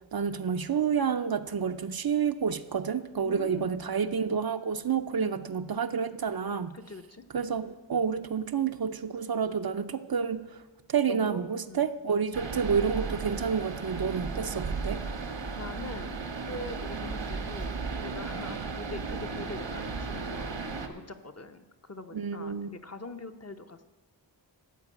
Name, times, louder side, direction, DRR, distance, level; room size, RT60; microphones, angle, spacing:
voice 1, 0.1-6.7 7.3-10.6 10.9-15.0 22.1-22.7, right 6 dB, 55° right, 10 dB, 0.6 m, -29 dB
voice 2, 3.2-3.8 5.2-5.4 6.7-7.2 11.1-11.9 15.5-16.2 16.5-23.8, left 2 dB, 35° left, 7 dB, 0.8 m, -43 dB
sound 1, 12.3-20.9, right 4 dB, 75° right, 1.1 m, -35 dB
13.0 x 4.7 x 8.4 m, 1.2 s
wide cardioid pair, 80°, 45 cm